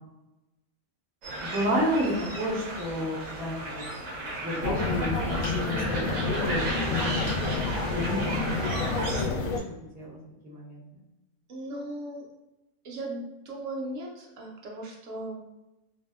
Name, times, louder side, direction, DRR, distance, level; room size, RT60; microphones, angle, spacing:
sound 1, 1.2-9.2, right 1 dB, 90° right, 1.1 m, -34 dB
voice 1, 1.4-3.8 4.1-7.2 7.9-9.5 9.9-10.2 10.4-10.8, equal, 10° right, -7 dB, 0.5 m, -31 dB
sound 2, 4.6-9.6, left 3 dB, 70° left, 0.9 m, -29 dB
sound 3, 5.4-6.0 7.2-7.5 8.1-8.2 8.5-8.6, left 1 dB, 20° left, 0.8 m, -41 dB
voice 2, 11.5-12.2 12.8-15.4, right 1 dB, 70° right, -2 dB, 1.0 m, -37 dB
2.6 x 2.1 x 2.3 m, 0.96 s
omnidirectional pair, 1.4 m